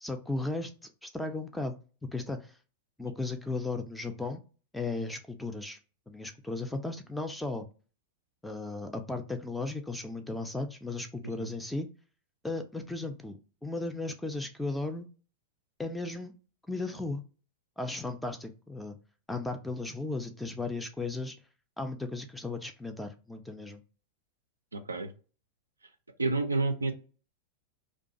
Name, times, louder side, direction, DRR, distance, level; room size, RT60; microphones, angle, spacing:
voice 1, 0.0-0.7 1.0-1.7 2.1-2.5 3.0-4.4 4.7-5.8 6.1-7.7 8.4-11.9 12.4-15.1 15.8-16.3 16.7-17.2 17.8-19.0 19.3-21.4 21.8-23.8, left 2 dB, 5° left, 6 dB, 0.4 m, -35 dB
voice 2, 24.7-25.1 26.2-26.9, right 3 dB, 80° right, 7 dB, 0.3 m, -29 dB
2.3 x 2.2 x 2.6 m, 0.35 s
figure-of-eight pair, 90°, 0 cm